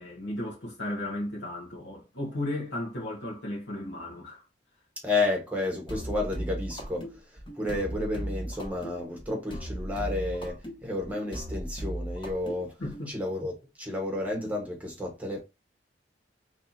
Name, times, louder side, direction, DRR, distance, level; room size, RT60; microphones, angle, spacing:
voice 1, 0.0-4.4 12.8-13.1, left 1 dB, 85° left, 1.3 m, -35 dB
voice 2, 5.0-12.8 13.1-15.4, left 2 dB, 10° right, 1.0 m, -31 dB
sound 1, 5.9-13.1, right 1 dB, 30° left, 1.2 m, -37 dB
3.2 x 2.7 x 4.1 m
head